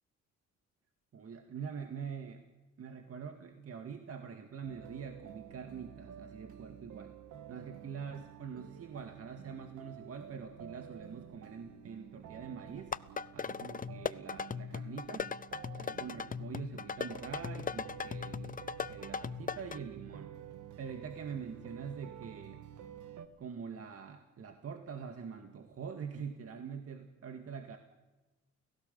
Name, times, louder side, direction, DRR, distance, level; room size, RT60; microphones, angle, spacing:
voice 1, 1.1-2.4 2.8-7.2 7.5-12.9 13.3-15.3 15.8-18.6 18.9-20.3 20.8-22.6 23.4-27.8, right 6 dB, 50° right, 5 dB, 2.0 m, -44 dB
sound 1, 4.6-23.3, right 9 dB, 75° right, 1.7 m, -50 dB
sound 2, 12.8-19.8, left 6 dB, 30° left, 0.7 m, -39 dB
30.0 x 16.5 x 7.0 m, 1.1 s
cardioid pair, 90°, 30 cm